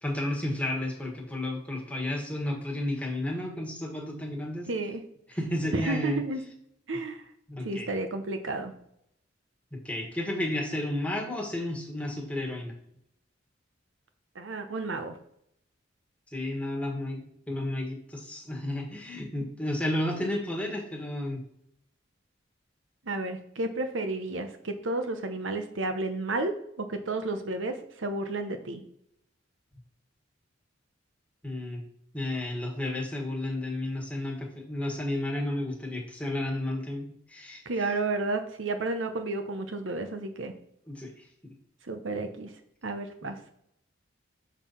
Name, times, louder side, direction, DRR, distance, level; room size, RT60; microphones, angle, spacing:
voice 1, 0.0-4.7 5.3-6.2 7.5-7.9 9.7-12.7 16.3-21.4 31.4-31.8 32.1-37.6 40.9-41.1 43.2-43.3, left 1 dB, 5° left, -1 dB, 1.5 m, -32 dB
voice 2, 4.7-5.0 5.7-6.4 6.9-7.2 7.6-8.7 14.4-15.2 23.1-26.5 26.8-28.8 37.7-40.5 41.9-42.5 42.8-43.4, right 2 dB, 80° right, 7 dB, 0.9 m, -31 dB
7.3 x 4.1 x 5.5 m, 0.72 s
head